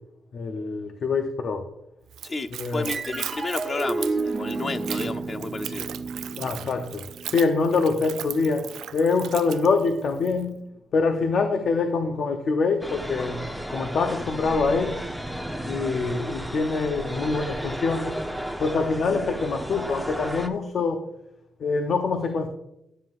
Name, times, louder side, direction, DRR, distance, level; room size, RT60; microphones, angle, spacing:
voice 1, 0.3-1.7 2.5-2.9 6.3-10.6 10.9-13.4 13.7-15.0 15.6-18.2 18.6-21.0 21.6-22.5, left 4 dB, 60° left, 0.7 m, -25 dB
Splash splatter / Trickle dribble, 2.1-10.4, right 10 dB, 85° right, 0.4 m, -38 dB
voice 2, 2.2-5.9, left 3 dB, 35° left, 0.5 m, -32 dB
sound 1, 2.9-9.5, right 3 dB, 25° right, 1.2 m, -32 dB
sound 2, 12.8-20.5, equal, 5° left, 0.8 m, -33 dB
11.0 x 7.6 x 2.5 m
cardioid pair, 90°, 0 cm